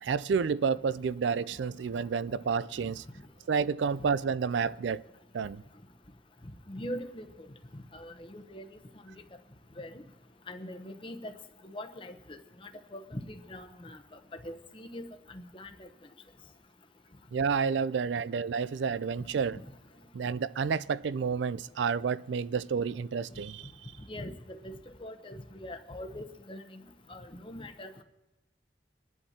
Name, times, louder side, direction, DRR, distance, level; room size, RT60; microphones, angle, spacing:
voice 1, 0.0-3.0 3.5-5.1 5.3-5.6 17.3-19.6 20.1-23.7, right 6 dB, 85° right, 0.4 m, -30 dB
voice 2, 6.7-7.3 7.9-8.7 9.8-10.0 10.5-11.3 11.6-14.0 14.4-15.7 24.1-26.8 27.1-28.0, left 1 dB, 30° left, 0.8 m, -42 dB
23.0 x 11.0 x 2.9 m
head